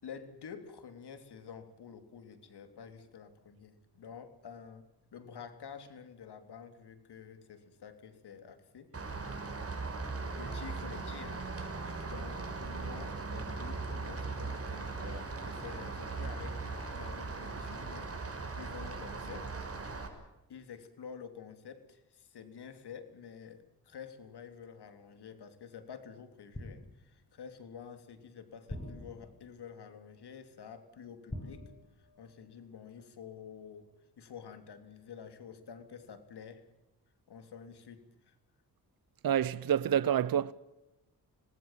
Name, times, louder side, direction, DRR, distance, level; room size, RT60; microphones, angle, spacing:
voice 1, 0.0-9.2 10.0-19.7 20.5-31.6 32.0-33.9 34.2-36.6 37.3-38.4, left 7 dB, 80° left, 3.4 m, -49 dB
Rain, 8.9-20.1, right 3 dB, 35° right, 5.9 m, -39 dB
sound 1, 26.5-27.3 28.7-29.7 31.3-32.4 32.7-32.9, left 1 dB, 15° left, 7.7 m, -45 dB
voice 2, 39.2-40.5, right 9 dB, 60° right, 0.8 m, -28 dB
26.0 x 20.0 x 7.6 m
cardioid pair, 70°, 39 cm